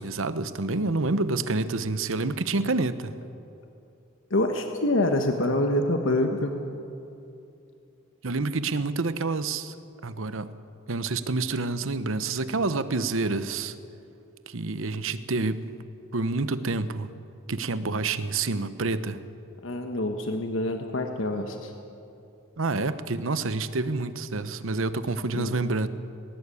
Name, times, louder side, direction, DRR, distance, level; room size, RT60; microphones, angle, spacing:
voice 1, 0.0-3.1 8.2-9.7 10.0-10.6 10.9-13.8 14.5-15.7 16.1-17.1 17.5-19.2 22.6-25.9, right 3 dB, 70° right, 13 dB, 0.9 m, -28 dB
voice 2, 4.3-6.5 19.6-21.7 25.3-25.6, left 1 dB, 65° left, 4 dB, 1.3 m, -26 dB
19.0 x 18.0 x 8.5 m, 2.7 s
head